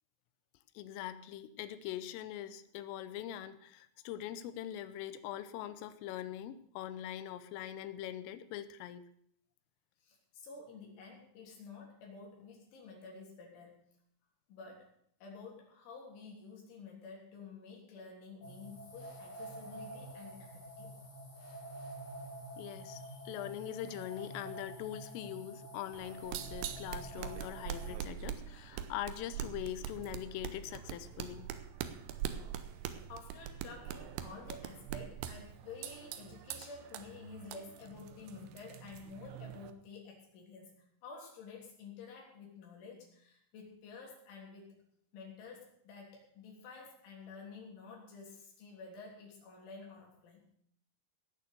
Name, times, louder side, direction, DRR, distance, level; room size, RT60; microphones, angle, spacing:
voice 1, 0.7-9.0 22.6-31.5, left 12 dB, 85° left, 12 dB, 3.4 m, -42 dB
voice 2, 10.0-13.9 14.5-14.9 15.2-20.9 33.1-44.8 45.1-50.5, left 4 dB, 70° left, -1 dB, 5.7 m, -51 dB
sound 1, 18.4-28.0, right 1 dB, 35° left, 4.2 m, -48 dB
sound 2, 25.9-39.7, right 9 dB, 80° right, 2.5 m, -43 dB
18.0 x 6.9 x 6.7 m, 0.67 s
omnidirectional pair, 5.8 m